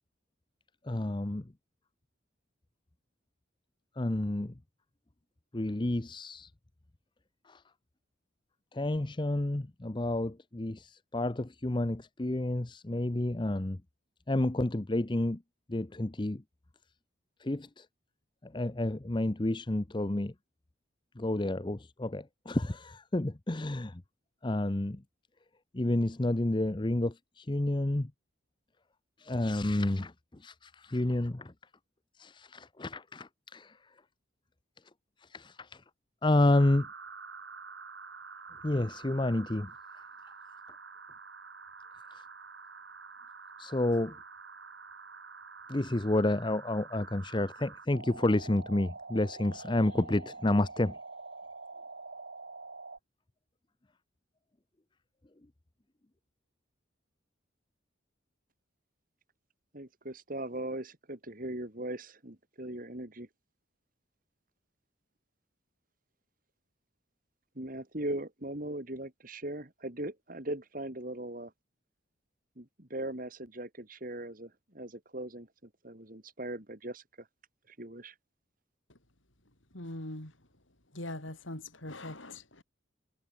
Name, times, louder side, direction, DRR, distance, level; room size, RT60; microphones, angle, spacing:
voice 1, 0.9-1.4 4.0-4.5 5.5-6.5 7.5-7.6 8.7-13.8 14.3-15.4 15.7-16.4 17.4-17.8 18.4-20.3 21.2-24.0 24.4-25.0 25.7-28.1 29.2-30.1 30.4-31.5 32.2-33.7 35.3-35.8 36.2-36.9 38.6-39.7 43.6-44.1 45.7-51.0, left 1 dB, 25° left, 0.7 m, -30 dB
sound 1, 36.5-53.0, right 4 dB, 60° right, 2.6 m, -47 dB
voice 2, 59.7-63.3 67.6-71.5 72.6-77.3 77.7-78.1, right 1 dB, 45° right, 2.7 m, -39 dB
voice 3, 79.7-80.5 80.9-82.6, left 1 dB, 75° left, 5.9 m, -42 dB
head